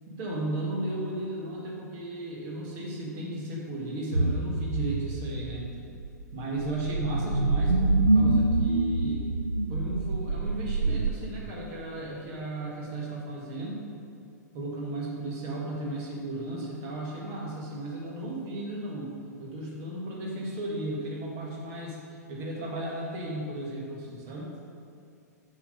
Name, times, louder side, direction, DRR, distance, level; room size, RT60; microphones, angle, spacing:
voice 1, 0.1-5.7 6.3-9.3 9.7-13.8 14.5-24.5, right 1 dB, 35° right, -2 dB, 1.8 m, -35 dB
sound 1, 4.1-11.1, right 2 dB, 85° right, 0.5 m, -26 dB
7.0 x 5.8 x 5.2 m, 2.4 s
figure-of-eight pair, 105°, 9 cm